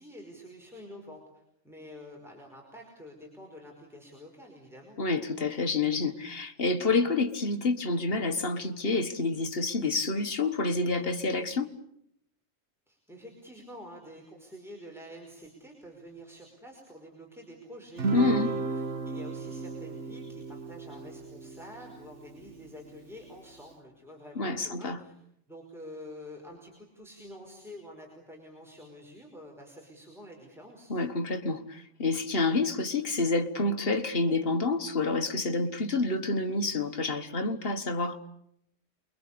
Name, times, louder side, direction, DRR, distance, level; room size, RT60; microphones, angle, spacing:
voice 1, 0.0-5.0 12.9-25.2 25.5-30.9, equal, ahead, 5.2 m, -48 dB
voice 2, 5.0-11.7 18.1-18.6 24.4-25.0 30.9-38.2, left 3 dB, 50° left, 1.8 m, -28 dB
Guitar, 18.0-22.6, right 4 dB, 65° right, 2.0 m, -34 dB
29.0 x 23.0 x 8.6 m
omnidirectional pair, 1.3 m